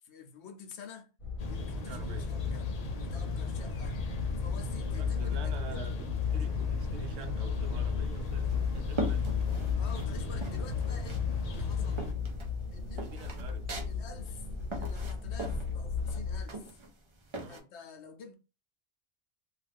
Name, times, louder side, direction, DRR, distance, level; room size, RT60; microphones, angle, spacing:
voice 1, 0.0-1.1 1.5-4.0 4.3-5.9 9.7-11.2 11.5-12.1 12.7-13.3 13.9-14.5 14.8-16.8 17.5-18.3, left 6 dB, 75° left, 0.9 m, -49 dB
A quiet bedroom room tone with an ambient background, 1.2-16.4, left 6 dB, 30° left, 0.9 m, -34 dB
sound 1, 1.4-12.1, left 2 dB, 55° left, 0.4 m, -38 dB
voice 2, 1.8-2.2 5.0-5.9 6.3-9.3 10.3-10.4 12.9-13.6 17.4-17.6, right 4 dB, 75° right, 0.9 m, -47 dB
sound 2, 8.2-10.1 10.4-11.3 11.5-17.6, right 2 dB, 40° right, 0.4 m, -40 dB
2.4 x 2.4 x 3.3 m
omnidirectional pair, 1.2 m